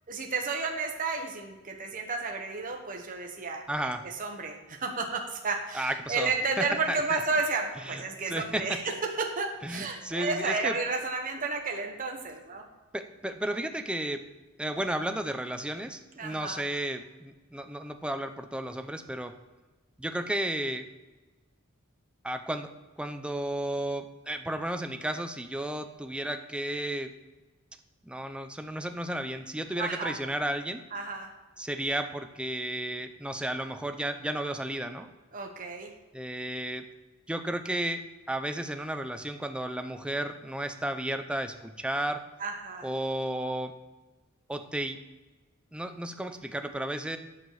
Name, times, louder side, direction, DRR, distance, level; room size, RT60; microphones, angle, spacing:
voice 1, 0.1-3.9 4.2-8.8 9.2-12.6 16.2-16.7 29.8-30.2 30.9-31.3 35.3-35.9 42.4-42.9, right 4 dB, 40° right, 2 dB, 1.1 m, -32 dB
voice 2, 3.7-4.1 5.7-6.3 6.6-7.2 7.9-8.8 9.6-10.8 12.9-14.2 14.6-19.3 20.0-20.9 22.2-22.7 23.0-27.1 28.0-30.8 31.6-35.1 36.1-36.9 37.3-38.0 38.3-42.2 42.8-43.7 44.5-45.0 45.7-47.2, right 1 dB, 5° right, 7 dB, 0.6 m, -33 dB
9.2 x 7.4 x 4.8 m, 1.2 s
head